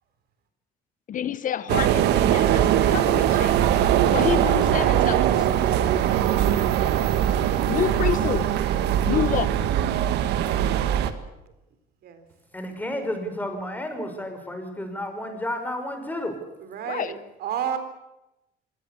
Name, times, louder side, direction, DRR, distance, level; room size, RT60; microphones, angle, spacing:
voice 1, 1.1-3.8 4.1-5.5 7.7-8.5 9.1-9.6 16.9-17.1, left 9 dB, 50° left, 15 dB, 1.0 m, -28 dB
sound 1, 1.7-11.1, right 10 dB, 85° right, 1.8 m, -21 dB
voice 2, 9.0-9.8 12.0-12.3 16.6-17.8, right 8 dB, 70° right, 9 dB, 3.9 m, -32 dB
voice 3, 12.5-16.4, left 1 dB, 10° left, 6 dB, 5.8 m, -31 dB
25.5 x 18.0 x 8.7 m, 0.92 s
cardioid pair, 110°, 17 cm